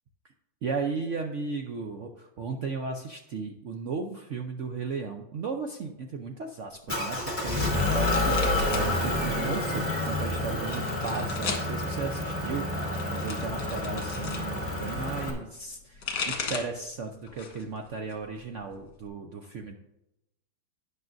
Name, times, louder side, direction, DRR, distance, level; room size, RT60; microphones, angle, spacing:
voice 1, 0.6-19.8, right 4 dB, 85° right, 3 dB, 0.6 m, -35 dB
Motor vehicle (road) / Engine, 6.9-15.3, left 2 dB, 5° left, 2.3 m, -29 dB
sound 1, 7.1-8.9 9.2-9.9 10.5-11.7 12.7-14.5 15.7-16.8 17.3-17.7 18.1-19.1, left 5 dB, 60° left, 2.0 m, -36 dB
12.0 x 9.5 x 2.6 m, 0.88 s
omnidirectional pair, 2.2 m